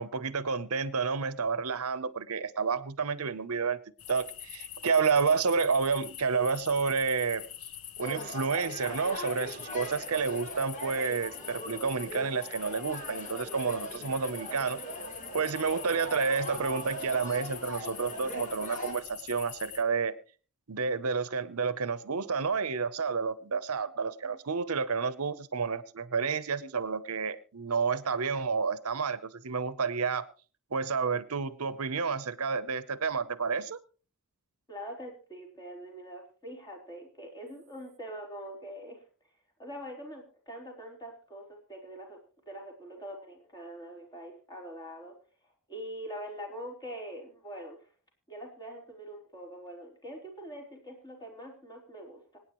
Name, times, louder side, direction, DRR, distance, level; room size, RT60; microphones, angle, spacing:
voice 1, 0.0-3.8 4.1-7.4 8.0-14.8 15.3-20.1 20.7-30.3 30.7-33.8, right 5 dB, 75° right, 15 dB, 0.8 m, -30 dB
sound 1, 4.0-19.8, left 11 dB, 70° left, 1.0 m, -45 dB
sound 2, 8.0-18.9, equal, 35° left, 3.4 m, -41 dB
voice 2, 34.7-39.0 39.6-42.2 42.5-45.1 45.7-47.9 48.3-52.4, equal, 20° left, 1 dB, 4.0 m, -43 dB
25.5 x 9.4 x 3.1 m, 0.37 s
head